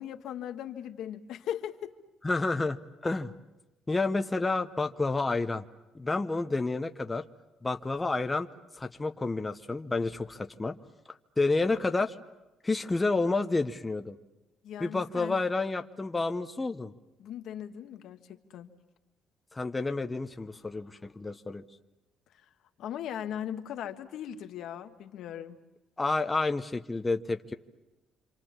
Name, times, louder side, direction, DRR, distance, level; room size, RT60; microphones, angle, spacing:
voice 1, 0.0-1.9 14.6-15.4 17.2-18.7 22.8-25.6, left 10 dB, 75° left, 6 dB, 1.5 m, -38 dB
voice 2, 2.2-3.3 3.9-5.6 5.9-7.2 7.6-8.5 8.7-10.8 11.1-12.2 12.6-14.2 14.8-16.9 19.5-21.6 26.0-27.5, left 3 dB, 15° left, 7 dB, 0.9 m, -30 dB
27.0 x 27.0 x 7.4 m, 1.0 s
cardioid pair, 110°, 0 cm